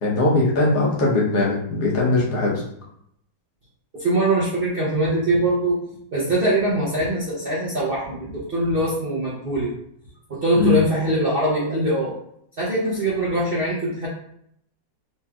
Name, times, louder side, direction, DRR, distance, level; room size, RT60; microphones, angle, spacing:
voice 1, 0.0-2.6 10.6-10.8, left 3 dB, 65° left, -3 dB, 1.4 m, -20 dB
voice 2, 3.9-5.8 6.1-9.7 10.3-12.1 12.6-14.1, right 1 dB, 50° right, -7 dB, 0.7 m, -22 dB
4.2 x 3.1 x 2.3 m, 0.71 s
omnidirectional pair, 1.9 m